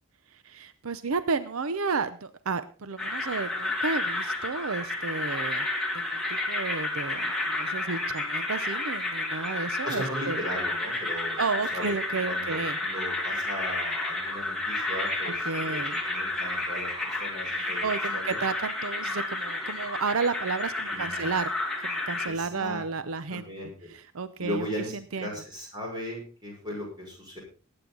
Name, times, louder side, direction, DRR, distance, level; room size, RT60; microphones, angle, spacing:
voice 1, 0.3-5.7 5.9-10.4 11.4-12.8 15.2-16.0 17.5-21.5 21.8-23.5 23.9-24.7 25.1-25.3, right 4 dB, 80° right, 13 dB, 0.7 m, -32 dB
sound 1, 3.0-22.3, left 2 dB, ahead, 2.7 m, -31 dB
voice 2, 9.8-11.4 11.7-11.9 12.3-17.9 18.1-18.4 20.9-21.4 22.3-22.8 23.3-23.9 24.4-27.4, equal, 20° right, -2 dB, 6.0 m, -37 dB
19.5 x 8.9 x 3.9 m, 0.36 s
head